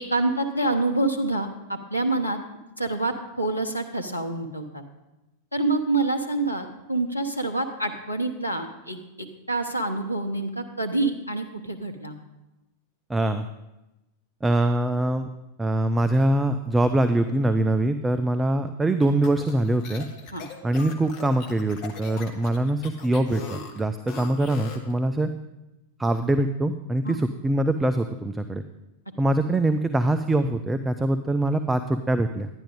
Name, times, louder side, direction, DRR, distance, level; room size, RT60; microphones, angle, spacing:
voice 1, 0.0-2.4 2.8-4.8 5.5-12.2 20.3-20.4 27.0-27.2, right 2 dB, 85° left, 6 dB, 0.8 m, -27 dB
voice 2, 13.1-13.4 14.4-15.3 15.6-20.0 20.6-25.3 26.0-28.6 29.2-32.5, right 1 dB, 10° right, 9 dB, 0.4 m, -23 dB
sound 1, 19.0-24.9, left 5 dB, 40° left, 1.2 m, -40 dB
11.0 x 10.0 x 3.7 m, 0.99 s
figure-of-eight pair, 90°, 0 cm